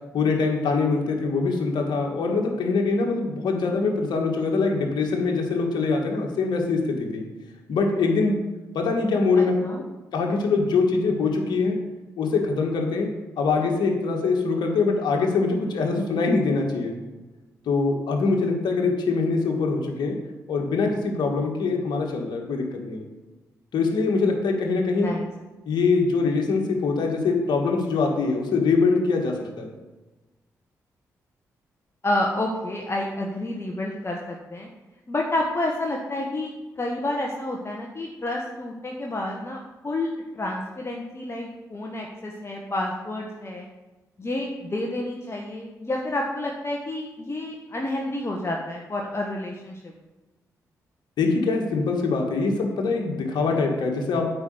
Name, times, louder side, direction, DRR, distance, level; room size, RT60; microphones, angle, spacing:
voice 1, 0.1-7.2 7.7-8.4 8.7-9.5 10.1-11.8 12.2-13.1 13.4-17.0 17.7-20.2 20.5-23.1 23.7-25.1 25.7-29.7 51.2-54.3, left 4 dB, 70° left, 1 dB, 1.9 m, -23 dB
voice 2, 9.4-9.8 25.0-25.3 32.0-34.7 35.1-36.5 36.8-39.6 39.8-40.1 40.3-43.7 44.2-49.9, left 1 dB, 35° left, 0 dB, 1.5 m, -29 dB
8.8 x 5.3 x 8.0 m, 1.1 s
hypercardioid pair, 45°, 8 cm